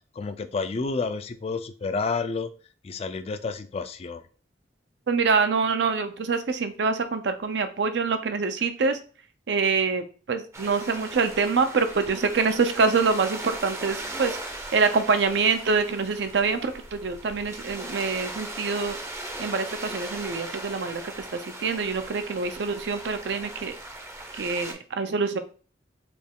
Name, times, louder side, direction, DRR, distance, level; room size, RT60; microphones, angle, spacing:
voice 1, 0.2-2.5 2.8-4.2, left 4 dB, 35° left, 10 dB, 0.3 m, -30 dB
voice 2, 5.1-9.0 9.5-14.4 14.7-19.0 19.4-23.7 24.4-25.4, right 4 dB, 70° right, 8 dB, 0.5 m, -25 dB
sound 1, 10.5-24.7, right 1 dB, 15° right, 0.5 m, -39 dB
4.2 x 2.4 x 3.5 m, 0.40 s
head